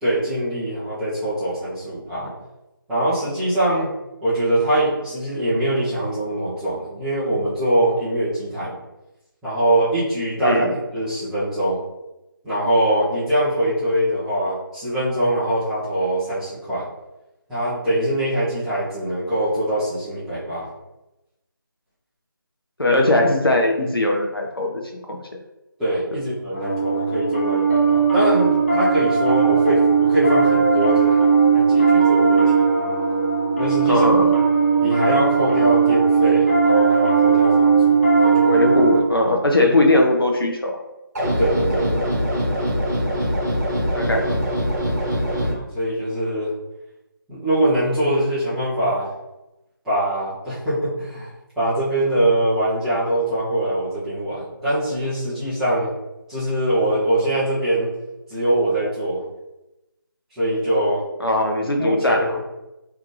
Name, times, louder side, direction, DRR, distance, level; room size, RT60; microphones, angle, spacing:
voice 1, 0.0-2.3 2.9-3.9 4.2-8.8 9.4-10.6 10.9-11.8 12.4-16.9 17.5-20.7 25.8-31.2 31.5-32.7 33.6-34.1 34.8-38.5 41.4-41.9 45.5-46.5 47.3-49.1 49.8-51.3 51.6-55.9 56.3-57.9 58.3-59.2 60.3-61.0 61.8-62.3, right 1 dB, ahead, -15 dB, 0.6 m, -23 dB
voice 2, 10.4-10.7 22.8-24.7 25.1-25.2 33.8-34.3 38.4-40.8 41.9-42.0 43.9-44.4 45.3-45.4 61.2-62.4, left 1 dB, 85° left, 1 dB, 1.0 m, -20 dB
Piano, 26.5-39.0, right 5 dB, 35° left, 1.0 m, -17 dB
sound 1, 41.2-45.5, equal, 45° right, 1.2 m, -23 dB
3.8 x 3.2 x 3.3 m, 0.96 s
figure-of-eight pair, 160°, 12 cm